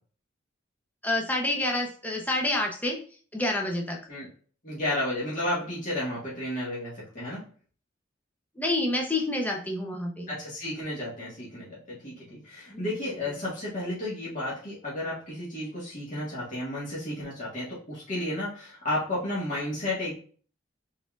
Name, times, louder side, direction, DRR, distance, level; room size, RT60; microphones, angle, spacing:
voice 1, 1.0-3.0 3.3-4.0 8.6-10.3 12.7-13.2, left 1 dB, 10° left, 0 dB, 0.7 m, -28 dB
voice 2, 4.6-7.4 10.3-11.6 12.0-20.1, left 1 dB, 40° left, -8 dB, 1.7 m, -32 dB
4.1 x 3.8 x 2.4 m, 0.43 s
head